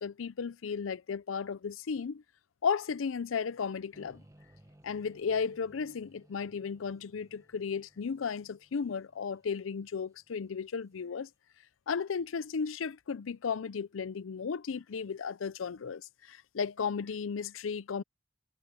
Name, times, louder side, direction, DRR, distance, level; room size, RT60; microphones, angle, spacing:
voice 1, 0.0-2.2 2.6-4.2 4.8-11.3 11.9-18.0, left 6 dB, 80° left, 0.5 m, -34 dB
sound 1, 3.9-11.0, right 1 dB, 15° right, 1.4 m, -62 dB
head